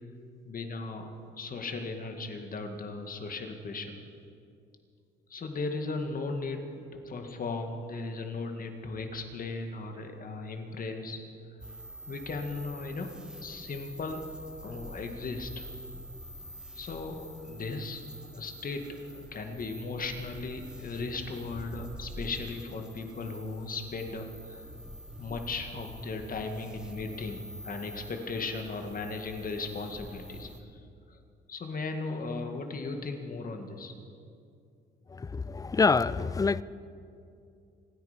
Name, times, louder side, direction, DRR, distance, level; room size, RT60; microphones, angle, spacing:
voice 1, 0.5-3.9 5.3-11.2 12.1-14.2 14.6-15.7 16.8-18.1 18.3-18.9 19.1-24.7 25.2-30.8 31.1-31.2 31.5-33.9, left 3 dB, 45° left, 2.0 m, -37 dB
sound 1, 11.6-30.6, equal, 5° right, 1.3 m, -46 dB
voice 2, 35.1-36.6, left 4 dB, 20° left, 0.4 m, -26 dB
26.5 x 9.7 x 5.2 m
cardioid pair, 90°, 20 cm